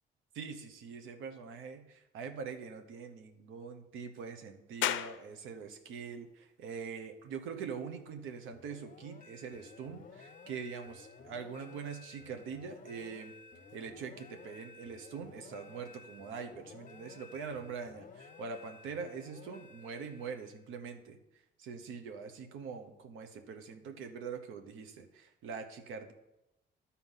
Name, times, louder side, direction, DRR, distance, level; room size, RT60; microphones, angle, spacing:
voice 1, 0.3-13.3 13.7-21.2 21.6-26.1, right 6 dB, 90° right, 7 dB, 0.9 m, -43 dB
sound 1, 4.8-17.9, left 12 dB, 70° left, 0.5 m, -46 dB
sound 2, 8.5-20.7, left 4 dB, 45° left, 0.8 m, -54 dB
11.0 x 4.3 x 5.6 m, 0.93 s
cardioid pair, 90°, 20 cm